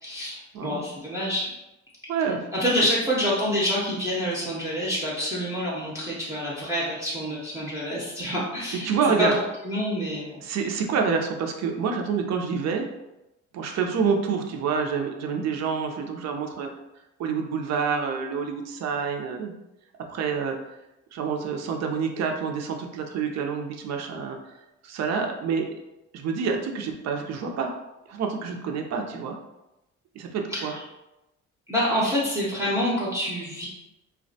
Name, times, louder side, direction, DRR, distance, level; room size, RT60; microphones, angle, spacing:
voice 1, 0.0-1.4 2.5-8.9 9.2-9.3 9.6-10.4 30.5-30.8 31.7-33.7, equal, 10° right, -6 dB, 0.5 m, -27 dB
voice 2, 2.1-2.5 8.8-9.4 10.4-12.9 13.5-16.7 17.2-19.5 20.1-20.6 21.1-24.4 24.8-25.7 26.1-27.7 28.1-29.4 30.2-30.8, right 6 dB, 60° right, 3 dB, 0.5 m, -27 dB
2.3 x 2.1 x 2.6 m, 0.94 s
cardioid pair, 90°, 30 cm